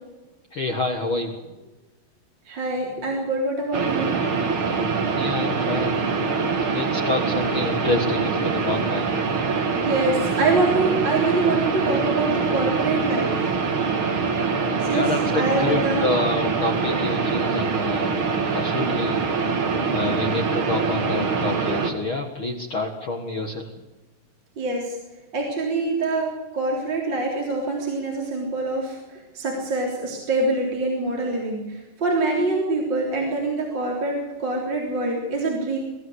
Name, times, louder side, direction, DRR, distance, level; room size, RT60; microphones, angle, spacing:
voice 1, 0.5-1.3 5.1-6.3 6.6-9.1 14.9-18.1 18.5-19.2 19.9-23.6, left 2 dB, 55° left, 3 dB, 1.4 m, -28 dB
voice 2, 2.5-4.1 9.8-13.5 14.8-16.0 24.6-25.0 25.3-35.8, right 2 dB, 25° right, -1 dB, 3.8 m, -25 dB
sound 1, 3.7-21.9, right 5 dB, 45° right, 1.9 m, -24 dB
24.0 x 15.0 x 8.1 m, 1.1 s
omnidirectional pair, 5.0 m